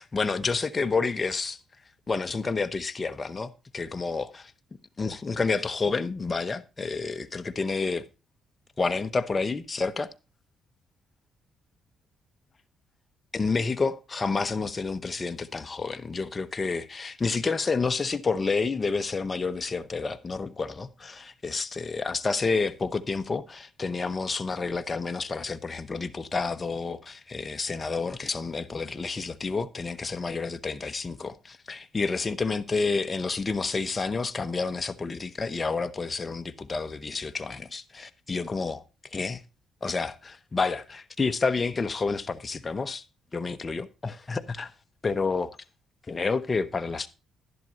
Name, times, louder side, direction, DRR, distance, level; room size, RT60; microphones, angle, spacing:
voice 1, 0.0-1.6 2.1-4.5 5.0-8.1 8.8-10.1 13.3-38.8 39.1-39.4 39.8-43.0 43.3-44.7 45.0-45.6 46.1-47.1, left 4 dB, 30° left, 0.9 m, -29 dB
12.0 x 11.0 x 2.7 m
cardioid pair, 90°, 0 cm